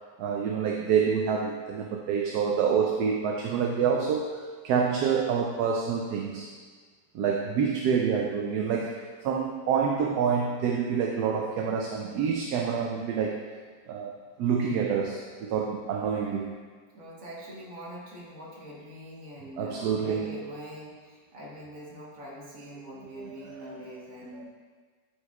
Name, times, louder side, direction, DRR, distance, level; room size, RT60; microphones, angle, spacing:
voice 1, 0.2-6.5 7.1-13.4 13.9-16.6 19.6-20.4 23.0-23.8 24.3-24.4, right 6 dB, 75° right, 1 dB, 1.1 m, -27 dB
voice 2, 16.9-24.4, equal, 55° right, -4 dB, 1.7 m, -43 dB
11.5 x 4.8 x 2.3 m, 1.5 s
omnidirectional pair, 1.8 m